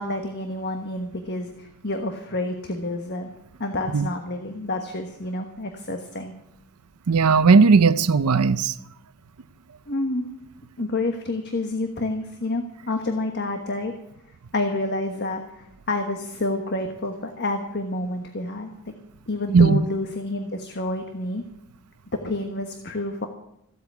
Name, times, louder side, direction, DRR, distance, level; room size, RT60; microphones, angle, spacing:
voice 1, 0.0-3.3 3.6-6.3 9.9-10.3 10.8-13.9 14.5-18.9 19.3-21.4 22.2-23.3, left 2 dB, 50° left, 5 dB, 1.3 m, -29 dB
voice 2, 7.1-8.7 19.5-19.8, right 5 dB, 80° right, 13 dB, 0.6 m, -16 dB
15.5 x 8.3 x 8.3 m, 0.80 s
head